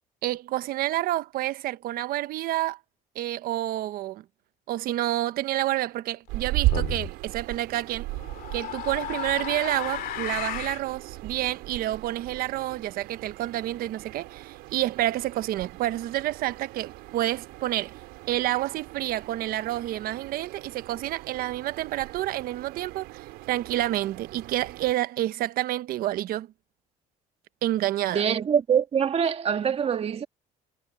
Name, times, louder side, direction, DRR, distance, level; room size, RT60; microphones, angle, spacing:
voice 1, 0.2-2.8 3.1-4.2 4.7-8.1 8.5-17.9 18.3-26.5 27.6-28.2, right 14 dB, 65° right, 1.1 m, -29 dB
sound 1, 6.3-24.9, right 20 dB, 85° right, 4.3 m, -37 dB
sound 2, 6.7-7.1 8.1-10.9, left 12 dB, 65° left, 2.7 m, -34 dB
voice 2, 28.1-30.3, right 7 dB, 40° right, 2.0 m, -24 dB
cardioid pair, 105°, 16 cm